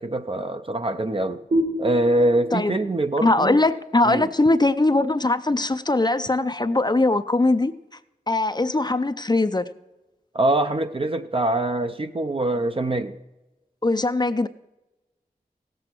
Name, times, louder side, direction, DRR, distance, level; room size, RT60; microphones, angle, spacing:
voice 1, 0.0-1.4 1.8-3.6 4.0-4.3 10.3-13.2, right 1 dB, 35° right, 0.5 m, -24 dB
sound 1, 1.5-4.9, equal, 65° right, 1.8 m, -30 dB
voice 2, 3.2-7.7 8.3-9.7 13.8-14.5, left 2 dB, 30° left, 0.5 m, -21 dB
16.5 x 7.7 x 4.5 m
cardioid pair, 40°, 15 cm